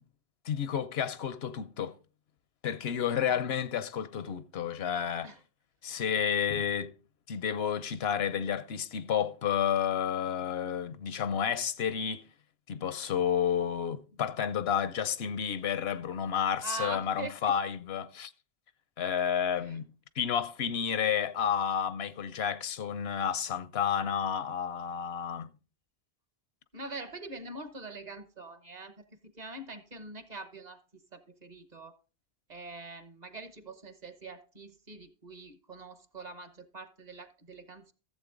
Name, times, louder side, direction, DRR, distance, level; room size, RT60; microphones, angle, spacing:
voice 1, 0.4-2.0 2.6-5.3 5.8-6.9 7.3-12.2 12.7-18.3 19.0-19.9 20.2-25.5, left 8 dB, 80° left, 1.0 m, -31 dB
voice 2, 16.6-17.5 19.6-19.8 26.7-30.8 31.1-31.9 32.5-37.9, right 3 dB, 45° right, 1.1 m, -43 dB
14.0 x 7.7 x 3.8 m
omnidirectional pair, 1.0 m